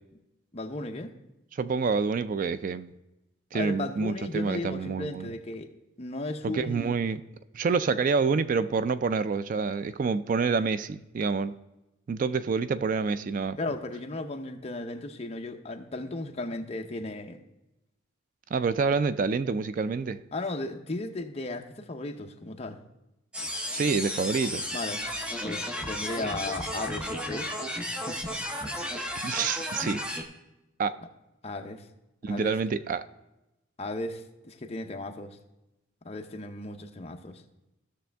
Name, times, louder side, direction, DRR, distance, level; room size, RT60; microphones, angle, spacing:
voice 1, 0.5-1.1 3.5-5.7 6.0-6.9 13.6-17.4 20.3-22.8 24.7-25.0 25.4-27.5 28.1-28.4 31.4-31.9 32.3-32.5 33.8-35.4 36.0-37.4, left 2 dB, 30° left, 4 dB, 0.7 m, -35 dB
voice 2, 1.5-2.9 3.5-5.3 6.4-7.2 7.5-11.5 12.1-13.6 18.5-20.2 23.7-24.7 29.1-30.0 30.8-31.0 32.2-33.0, right 5 dB, 40° right, 14 dB, 0.3 m, -27 dB
sound 1, 23.3-30.2, equal, 5° right, 0.7 m, -33 dB
15.0 x 6.3 x 3.4 m, 0.94 s
head